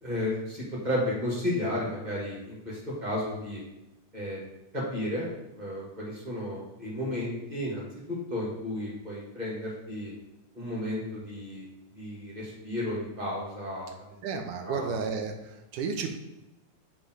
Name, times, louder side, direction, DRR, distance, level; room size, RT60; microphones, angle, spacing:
voice 1, 0.0-3.6 4.1-4.5 4.7-5.3 5.5-10.1 10.5-11.7 11.9-14.0 14.6-15.0, left 1 dB, 15° right, -5 dB, 1.8 m, -33 dB
voice 2, 14.2-16.2, right 5 dB, 90° right, 5 dB, 2.3 m, -32 dB
8.2 x 3.8 x 4.8 m, 0.95 s
omnidirectional pair, 3.6 m